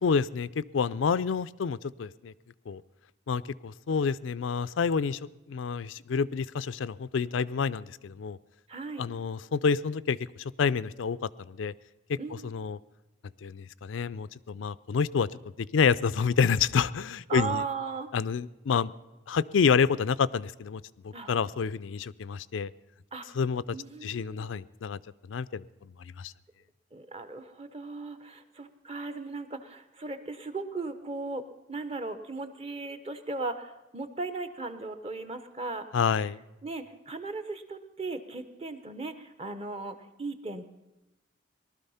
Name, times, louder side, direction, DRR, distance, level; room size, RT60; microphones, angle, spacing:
voice 1, 0.0-2.3 2.7-2.8 3.3-5.2 5.5-8.4 9.0-11.2 11.5-11.7 12.4-12.8 13.4-15.3 15.7-17.6 18.1-18.9 19.3-22.7 23.4-23.6 24.0-25.0 25.3-25.6 26.2-26.3 35.9-36.4, left 6 dB, 90° left, 16 dB, 0.4 m, -28 dB
voice 2, 8.7-9.0 12.2-12.5 17.3-18.1 21.1-21.3 23.1-23.3 23.7-24.5 26.9-35.9 36.6-40.7, right 3 dB, 30° right, 11 dB, 0.9 m, -37 dB
19.0 x 12.5 x 5.6 m, 1.0 s
head